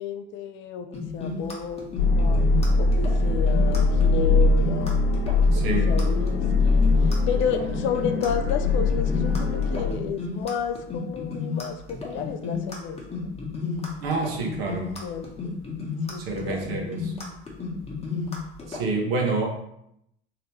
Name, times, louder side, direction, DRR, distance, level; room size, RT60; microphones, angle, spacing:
voice 1, 0.0-1.9 2.2-2.5 2.7-5.1 5.6-6.9 7.3-13.3 15.0-15.8 16.1-16.9, left 7 dB, 40° left, 7 dB, 0.4 m, -32 dB
sound 1, 0.9-18.8, left 4 dB, 20° left, 1.0 m, -32 dB
sound 2, 2.0-9.9, left 3 dB, 55° left, 0.9 m, -21 dB
voice 2, 5.5-6.0 14.0-14.9 16.2-17.1 18.7-19.5, right 3 dB, 70° right, 1 dB, 0.9 m, -28 dB
3.1 x 2.9 x 3.0 m, 0.78 s
figure-of-eight pair, 65°, 31 cm